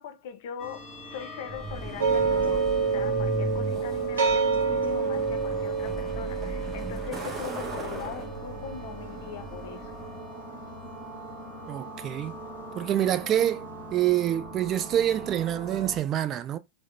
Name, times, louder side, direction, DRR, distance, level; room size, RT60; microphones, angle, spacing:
voice 1, 0.0-2.7 2.9-9.9, left 8 dB, 50° left, 0.6 m, -41 dB
sound 1, 0.6-16.0, equal, 10° left, 1.5 m, -43 dB
Truck, 1.5-10.2, right 2 dB, 15° right, 1.2 m, -37 dB
sound 2, 2.0-11.2, right 5 dB, 70° right, 0.8 m, -28 dB
voice 2, 11.7-12.4 12.8-13.7 13.9-16.6, right 11 dB, 30° right, 0.4 m, -26 dB
3.5 x 2.1 x 3.4 m
figure-of-eight pair, 90°, 0 cm